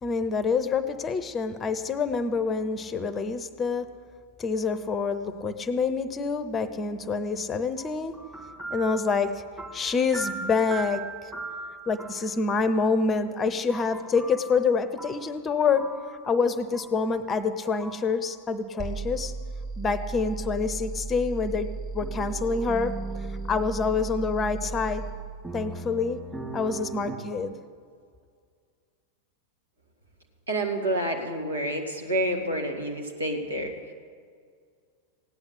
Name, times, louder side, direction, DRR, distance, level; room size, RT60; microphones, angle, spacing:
voice 1, 0.0-3.9 4.4-8.1 8.7-9.4 9.7-11.3 11.9-15.8 16.2-19.3 19.8-21.7 21.9-22.9 23.5-25.0 25.5-26.2 26.5-27.6, left 4 dB, 20° left, 12 dB, 0.8 m, -27 dB
sound 1, 7.8-12.5 13.7-15.4 15.8-16.3 16.7-17.1 17.8-18.2 22.0-25.1 25.4-27.2, right 3 dB, 10° right, 2.1 m, -40 dB
sound 2, 18.8-25.2, right 3 dB, 25° right, 2.4 m, -35 dB
voice 2, 30.5-33.9, right 1 dB, 75° right, 2 dB, 2.0 m, -29 dB
16.5 x 9.7 x 8.2 m, 2.1 s
figure-of-eight pair, 90°, 0 cm